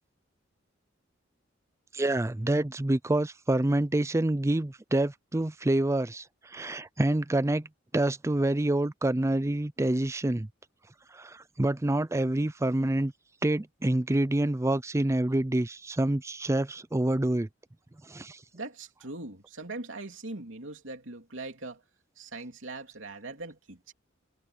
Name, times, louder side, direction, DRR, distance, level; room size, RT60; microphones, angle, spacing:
voice 1, 1.9-7.7 7.9-10.5 11.1-13.1 13.4-17.5 18.1-18.4, right 1 dB, 15° right, 0.5 m, -27 dB
voice 2, 18.5-21.8 22.2-23.9, right 2 dB, 75° right, 3.1 m, -41 dB
head